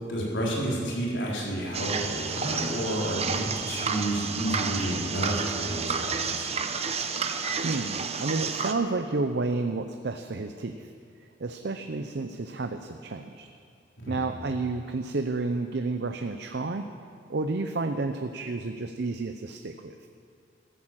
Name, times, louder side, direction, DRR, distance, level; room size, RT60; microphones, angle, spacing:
voice 1, 0.1-6.5 14.0-14.3, right 1 dB, 85° left, -4 dB, 4.0 m, -30 dB
sound 1, 1.7-8.7, right 5 dB, 35° right, 0.8 m, -30 dB
voice 2, 7.6-10.9 11.4-13.5 14.1-16.9 17.3-20.1, right 3 dB, 65° right, 7 dB, 0.6 m, -31 dB
14.0 x 11.0 x 7.5 m, 2.4 s
head